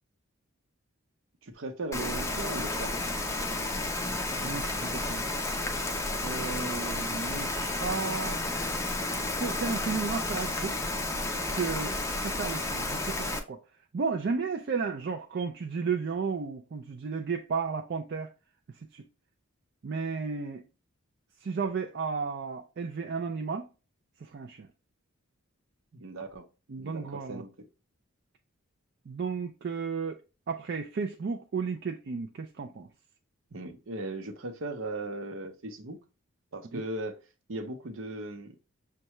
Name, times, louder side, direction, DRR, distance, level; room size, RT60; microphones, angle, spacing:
voice 1, 1.4-3.0 25.9-26.5 26.8-27.7 33.5-36.0 36.5-37.2 37.5-38.6, right 2 dB, 65° right, 0.8 m, -37 dB
Rain, 1.9-13.4, left 2 dB, 15° left, 0.4 m, -32 dB
voice 2, 4.4-5.2 6.2-8.4 9.3-10.8 11.5-13.6 13.9-18.3 18.7-19.0 19.8-20.6 21.4-23.7 24.2-24.7 26.7-27.4 29.1-30.2 30.5-32.9 36.7-36.8, right 5 dB, 50° right, 0.4 m, -33 dB
6.5 x 2.3 x 3.0 m
head